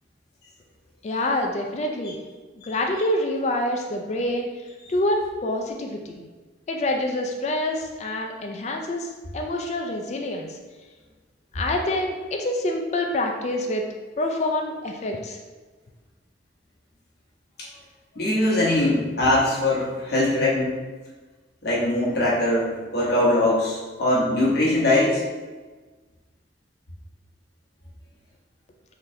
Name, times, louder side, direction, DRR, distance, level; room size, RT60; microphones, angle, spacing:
voice 1, 1.0-2.2 2.6-4.5 4.9-6.2 6.7-10.6 11.5-13.8 14.2-15.4, left 1 dB, 35° left, 2 dB, 0.3 m, -26 dB
voice 2, 18.1-20.8 21.6-25.2, left 1 dB, 55° left, -6 dB, 1.1 m, -21 dB
3.8 x 2.7 x 3.2 m, 1.3 s
head